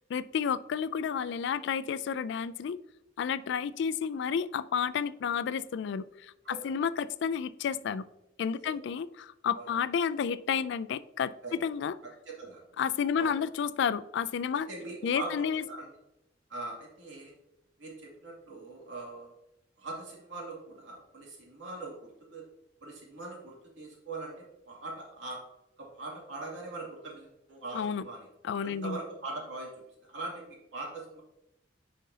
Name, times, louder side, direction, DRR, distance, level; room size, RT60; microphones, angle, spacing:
voice 1, 0.1-2.8 3.2-8.0 8.4-11.3 11.6-12.0 12.8-14.7 15.0-15.6 27.7-28.0 28.4-29.0, left 7 dB, 65° left, 16 dB, 0.3 m, -31 dB
voice 2, 12.3-12.6 13.1-13.3 14.7-15.9 16.5-17.3 17.8-19.3 19.8-22.4 22.8-25.4 25.8-28.3 28.6-29.7 30.1-31.2, right 2 dB, 85° right, -3 dB, 2.4 m, -41 dB
9.2 x 5.1 x 2.8 m, 0.87 s
head